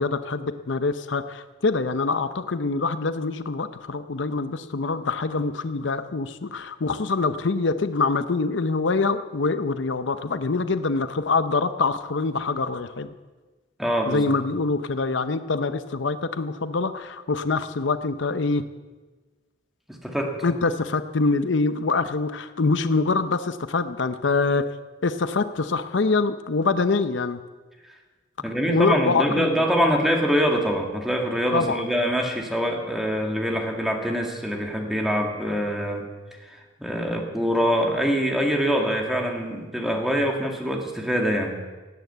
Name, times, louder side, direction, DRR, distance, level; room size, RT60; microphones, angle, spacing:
voice 1, 0.0-13.1 14.1-18.6 20.4-24.7 25.0-27.4 28.7-29.9 31.5-31.9, left 3 dB, 75° left, 11 dB, 0.7 m, -25 dB
voice 2, 13.8-14.4 19.9-20.4 28.4-36.1 36.5-41.6, equal, ahead, 1 dB, 2.0 m, -24 dB
18.0 x 9.1 x 8.1 m, 1.3 s
head